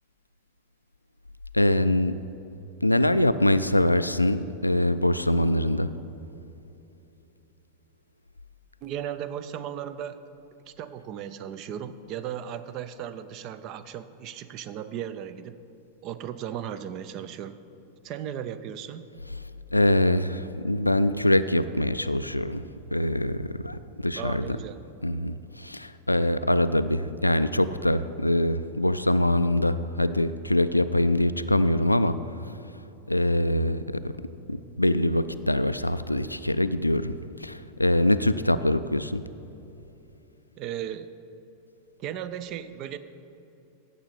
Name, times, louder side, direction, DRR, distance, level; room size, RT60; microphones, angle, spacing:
voice 1, 1.5-2.1 2.8-5.9 19.7-24.6 25.0-32.2 33.1-39.2, left 1 dB, 85° left, 13 dB, 0.3 m, -24 dB
voice 2, 8.8-10.2 10.7-15.6 16.0-17.6 18.0-19.1 24.1-24.8 40.6-41.1 42.0-43.0, right 9 dB, 40° right, 13 dB, 0.5 m, -36 dB
15.5 x 6.7 x 4.2 m, 3.0 s
figure-of-eight pair, 90°, 0 cm